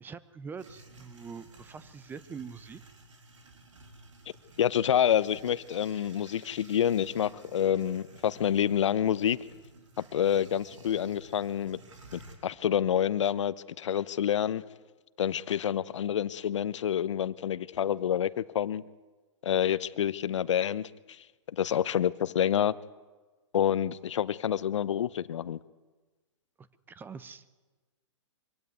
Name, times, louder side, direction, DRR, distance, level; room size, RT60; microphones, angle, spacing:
voice 1, 0.0-2.8 26.6-27.4, right 6 dB, 10° right, 0.8 m, -44 dB
sound 1, 0.6-12.4, right 2 dB, 85° right, 4.6 m, -54 dB
voice 2, 4.6-9.4 10.0-11.8 12.1-14.6 15.2-18.8 19.4-22.7 23.5-25.6, left 9 dB, 75° left, 0.8 m, -28 dB
24.0 x 16.0 x 9.5 m
hypercardioid pair, 135°, 16 cm